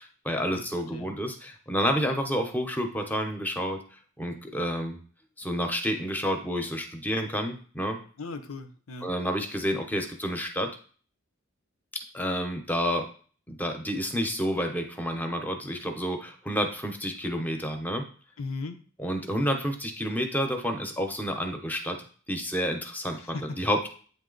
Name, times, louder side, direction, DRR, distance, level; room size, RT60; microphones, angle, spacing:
voice 1, 0.0-3.8 4.2-5.0 5.4-8.0 9.0-10.7 12.1-13.1 13.5-18.0 19.0-22.0 22.3-23.9, equal, 10° left, 4 dB, 0.8 m, -29 dB
voice 2, 8.2-9.1 18.4-18.8 23.1-23.6, left 3 dB, 80° left, 8 dB, 0.8 m, -37 dB
8.6 x 3.3 x 3.9 m, 0.42 s
head